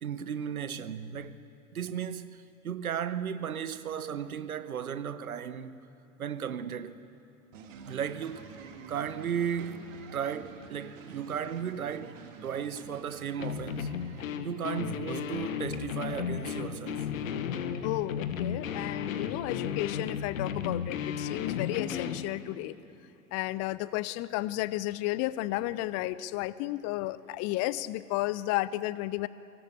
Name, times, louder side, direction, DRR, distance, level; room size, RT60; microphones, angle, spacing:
voice 1, 0.0-1.4 1.7-5.8 6.2-7.0 7.8-8.6 8.9-13.9 14.4-17.1, right 8 dB, 80° right, 1.0 m, -35 dB
sound 1, 7.5-16.1, right 5 dB, 60° right, 2.1 m, -49 dB
sound 2, 13.4-22.3, left 8 dB, 65° left, 1.4 m, -34 dB
voice 2, 17.8-22.7 23.3-29.3, left 17 dB, 35° left, 0.6 m, -33 dB
23.0 x 18.0 x 8.3 m
figure-of-eight pair, 80°, 43 cm